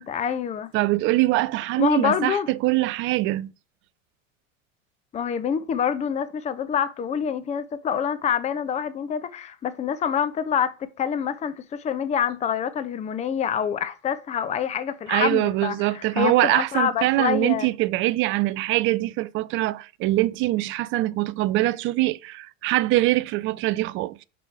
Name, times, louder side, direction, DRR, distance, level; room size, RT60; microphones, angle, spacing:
voice 1, 0.0-0.7 1.8-2.5 5.1-17.7, left 8 dB, 15° left, 0.6 m, -26 dB
voice 2, 0.7-3.5 15.1-24.2, right 17 dB, 30° right, 0.5 m, -23 dB
6.2 x 4.6 x 4.6 m
figure-of-eight pair, 75°, 39 cm